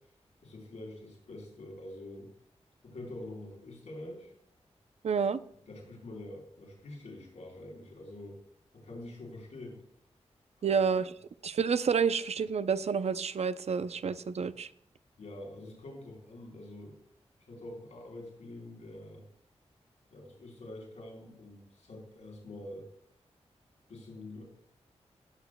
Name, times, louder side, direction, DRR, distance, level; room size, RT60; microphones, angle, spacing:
voice 1, 0.4-2.3 2.8-4.3 5.7-8.4 8.7-9.8 10.6-10.8 15.2-17.0 17.4-19.3 20.1-22.9 23.9-24.4, left 1 dB, 85° left, -2 dB, 4.0 m, -46 dB
voice 2, 5.0-5.4 10.6-11.1 11.4-14.7, right 6 dB, 65° right, 13 dB, 0.5 m, -29 dB
17.5 x 6.9 x 2.2 m, 0.66 s
cardioid pair, 60°, 12 cm